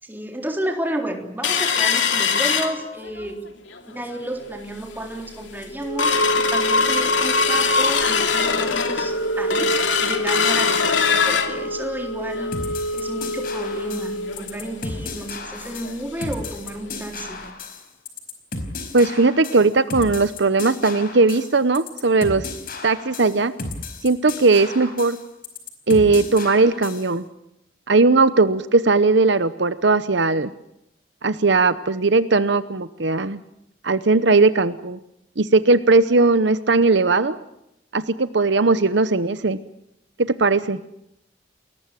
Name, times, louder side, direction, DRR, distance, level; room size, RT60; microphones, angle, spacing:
voice 1, 0.0-3.4 3.9-9.7 10.0-12.6 12.9-17.4, right 1 dB, 10° right, 3 dB, 3.6 m, -31 dB
sound 1, 1.4-3.3 3.7-3.8 4.1-4.5 5.0-5.1 5.4-15.9 16.3-16.4 16.7-16.9 17.4-17.5, left 4 dB, 75° left, 2.8 m, -22 dB
sound 2, 12.5-27.1, left 3 dB, 50° left, 4.8 m, -34 dB
voice 2, 18.9-22.5 22.8-23.5 24.0-25.2 25.9-27.2 27.9-30.5 31.2-33.4 33.8-35.0 35.4-37.4 37.9-39.6 40.2-40.8, right 3 dB, 65° right, 13 dB, 0.9 m, -18 dB
29.5 x 21.5 x 7.6 m, 0.82 s
head